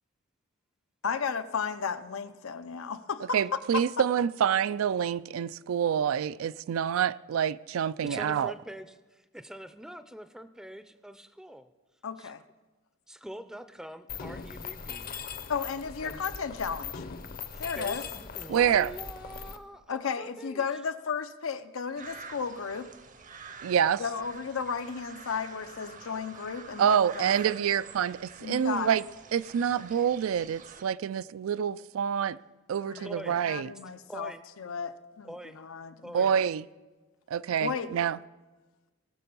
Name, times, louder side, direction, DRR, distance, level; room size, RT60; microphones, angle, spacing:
voice 1, 1.0-3.8 12.0-12.4 15.5-17.0 17.6-18.0 19.9-22.9 24.0-27.3 28.4-29.0 32.7-33.1 33.5-36.3 37.6-37.9, left 6 dB, 90° left, 0.6 m, -34 dB
voice 2, 3.3-8.5 18.5-18.9 23.6-24.0 26.8-29.0 29.3-32.4 32.7-33.7 36.1-36.7 37.3-38.2, right 8 dB, 85° right, 0.3 m, -27 dB
voice 3, 8.0-11.7 12.2-12.3 13.1-15.2 16.0-16.2 17.5-20.6 33.0-33.4 34.1-34.4 35.2-35.6 36.0-36.3, equal, 5° right, 0.4 m, -44 dB
Mechanisms, 14.1-19.6, left 6 dB, 45° left, 0.6 m, -40 dB
sound 1, 22.0-30.8, right 5 dB, 40° right, 0.7 m, -48 dB
18.0 x 6.7 x 5.4 m
head